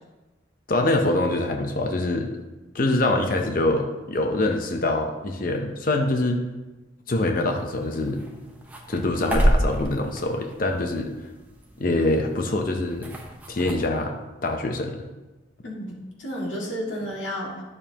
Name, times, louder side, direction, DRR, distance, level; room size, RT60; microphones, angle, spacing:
voice 1, 0.7-2.3 2.7-6.4 7.1-8.2 8.9-11.1 11.8-13.1 13.5-14.2 14.4-15.0, left 2 dB, 45° left, 4 dB, 0.7 m, -24 dB
sound 1, 7.5-13.7, equal, 10° right, 0.8 m, -29 dB
voice 2, 15.6-17.6, equal, 85° left, -3 dB, 2.1 m, -32 dB
11.0 x 6.9 x 2.9 m, 1.1 s
head